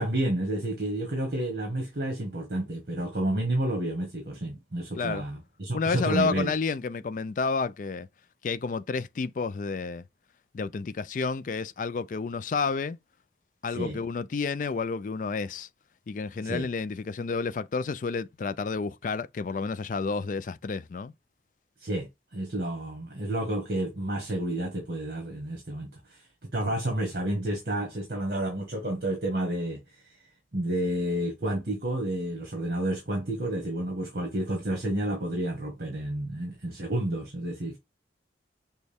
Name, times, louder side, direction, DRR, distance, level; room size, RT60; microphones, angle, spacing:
voice 1, 0.0-6.5 13.7-14.0 16.4-16.7 21.8-26.2 26.5-29.8 30.0-30.2 30.5-37.8, right 1 dB, 55° right, 1.4 m, -30 dB
voice 2, 5.7-8.1 8.4-10.0 10.5-13.0 13.6-15.7 16.1-21.1, left 4 dB, 45° left, 0.3 m, -30 dB
6.2 x 2.2 x 3.5 m
head